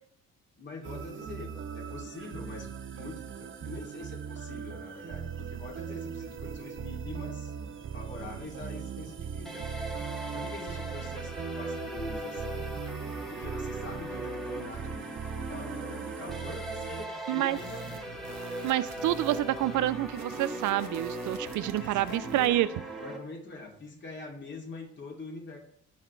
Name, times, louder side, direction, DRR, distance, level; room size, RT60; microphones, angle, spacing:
voice 1, 0.6-7.5 7.9-9.7 10.3-12.7 13.3-15.1 15.3-18.2 21.6-25.6, left 3 dB, 40° left, -1 dB, 2.8 m, -44 dB
sound 1, 0.8-17.1, right 7 dB, 40° right, 0.7 m, -39 dB
sound 2, 9.5-23.2, right 1 dB, ahead, 1.6 m, -39 dB
voice 2, 17.3-17.6 18.6-22.7, right 14 dB, 80° right, 15 dB, 0.5 m, -28 dB
sound 3, 17.5-22.5, right 5 dB, 60° right, 1.4 m, -45 dB
14.5 x 5.0 x 3.2 m, 0.64 s
cardioid pair, 90°, 30 cm